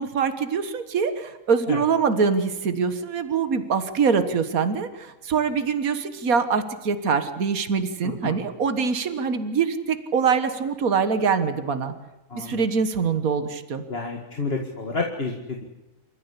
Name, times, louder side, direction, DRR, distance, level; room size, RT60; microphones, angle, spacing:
voice 1, 0.0-11.9 12.3-13.8, right 5 dB, 80° right, 10 dB, 1.9 m, -24 dB
voice 2, 8.0-8.4 12.3-12.7 13.9-15.6, left 3 dB, 45° left, 1 dB, 2.2 m, -30 dB
28.0 x 14.5 x 8.3 m, 1.0 s
omnidirectional pair, 1.5 m